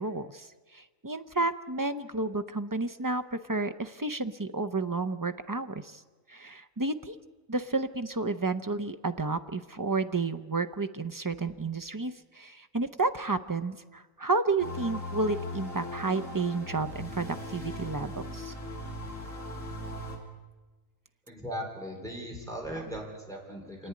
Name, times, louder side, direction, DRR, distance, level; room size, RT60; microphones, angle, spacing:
voice 1, 0.0-6.0 6.3-7.2 7.5-18.5 22.7-22.9, right 3 dB, 25° right, 9 dB, 0.4 m, -31 dB
sound 1, 14.6-20.2, left 1 dB, 65° left, 3.4 m, -39 dB
voice 2, 21.3-23.9, equal, ahead, -1 dB, 4.1 m, -38 dB
28.5 x 10.5 x 9.6 m, 1.3 s
omnidirectional pair, 1.4 m